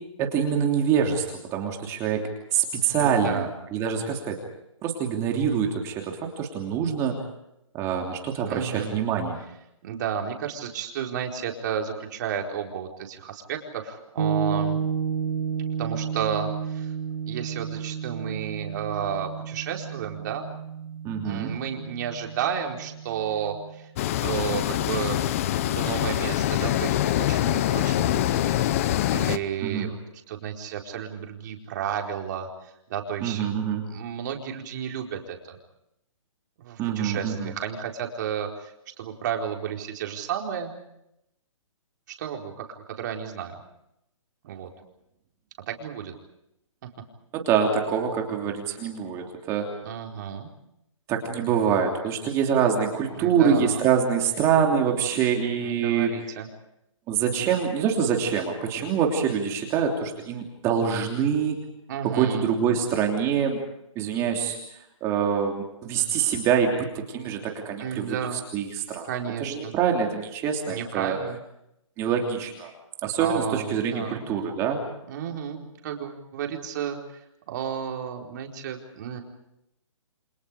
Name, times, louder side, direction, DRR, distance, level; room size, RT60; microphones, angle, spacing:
voice 1, 0.2-1.2 1.5-2.2 2.5-4.4 4.8-7.2 7.7-9.4 21.0-21.5 29.6-29.9 33.2-33.8 36.8-37.5 47.3-49.7 51.1-56.1 57.1-61.6 62.0-63.6 63.9-64.6 65.0-68.2 68.5-69.1 69.4-71.2 72.0-72.7 73.0-74.8, right 7 dB, 15° right, 2 dB, 3.1 m, -25 dB
voice 2, 2.9-3.5 8.3-8.9 9.8-14.8 15.8-16.9 17.3-20.5 21.2-23.9 24.2-25.2 25.7-28.6 29.1-30.0 30.3-33.4 33.9-35.6 36.6-40.8 42.1-43.6 44.4-44.7 45.7-46.1 46.8-46.9 49.8-50.5 53.1-53.9 55.6-56.5 61.9-62.5 67.8-68.4 69.0-69.7 70.7-71.4 73.2-74.3 75.1-79.2, right 8 dB, 35° right, 2 dB, 4.4 m, -32 dB
sound 1, 14.2-23.9, right 7 dB, 70° right, 2.0 m, -32 dB
sound 2, 24.0-29.4, left 13 dB, 25° left, 0.8 m, -24 dB
28.5 x 27.0 x 5.1 m, 0.82 s
hypercardioid pair, 165°, 17 cm